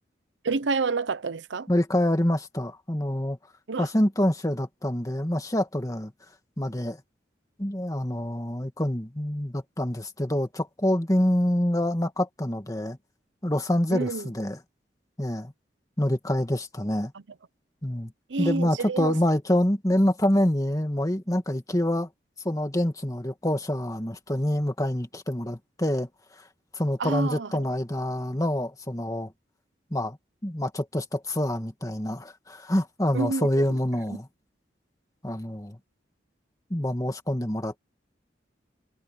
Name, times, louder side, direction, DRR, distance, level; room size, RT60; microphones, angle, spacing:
voice 1, 0.4-1.7 3.7-3.9 13.9-14.3 18.3-19.2 27.0-27.6 33.1-33.8, right 4 dB, 85° right, 0.8 m, -28 dB
voice 2, 1.7-3.4 3.8-6.1 6.6-7.0 7.6-13.0 13.4-14.6 15.2-15.5 16.0-17.1 17.8-18.1 18.4-22.1 22.4-26.1 26.7-29.3 29.9-30.2 30.4-34.3 35.2-35.8 36.7-37.8, left 1 dB, 20° left, 2.1 m, -26 dB
head